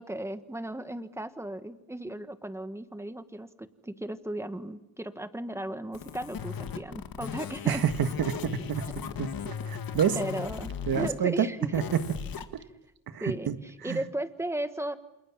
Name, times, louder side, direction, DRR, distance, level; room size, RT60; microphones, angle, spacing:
voice 1, 0.0-7.8 8.9-9.0 10.1-11.8 13.2-15.0, right 1 dB, 10° right, 10 dB, 1.4 m, -36 dB
sound 1, 5.9-11.1 11.7-12.4, left 7 dB, 80° left, 2.1 m, -37 dB
voice 2, 7.7-8.8 9.2-10.2 10.9-11.5 11.7-12.0 12.5-12.6 13.1-13.5 13.9-14.0, right 8 dB, 85° right, 9 dB, 1.7 m, -28 dB
29.0 x 28.0 x 7.4 m, 0.88 s
wide cardioid pair, 140°, 35 cm